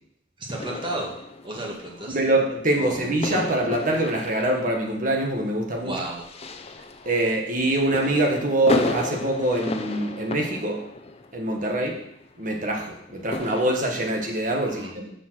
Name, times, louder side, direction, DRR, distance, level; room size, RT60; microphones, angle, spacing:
voice 1, 0.4-1.2 1.4-2.2 2.8-3.1 5.7-6.2 14.6-14.9, right 1 dB, 30° right, -2 dB, 1.9 m, -33 dB
sound 1, 0.6-14.4, left 2 dB, 35° left, 0.7 m, -34 dB
voice 2, 2.1-5.9 7.0-10.8 11.3-12.0 12.4-15.1, right 1 dB, 45° right, 2 dB, 1.3 m, -24 dB
7.1 x 6.4 x 6.0 m, 0.74 s
head